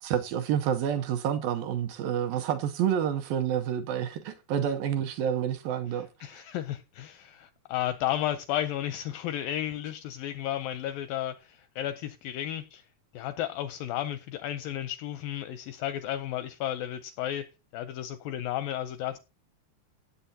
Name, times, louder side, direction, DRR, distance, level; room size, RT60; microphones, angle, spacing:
voice 1, 0.0-6.4, right 9 dB, 75° right, 2.2 m, -29 dB
voice 2, 6.2-12.9 13.1-17.5 17.7-19.2, left 12 dB, 80° left, 2.0 m, -33 dB
17.0 x 8.0 x 2.7 m
omnidirectional pair, 4.6 m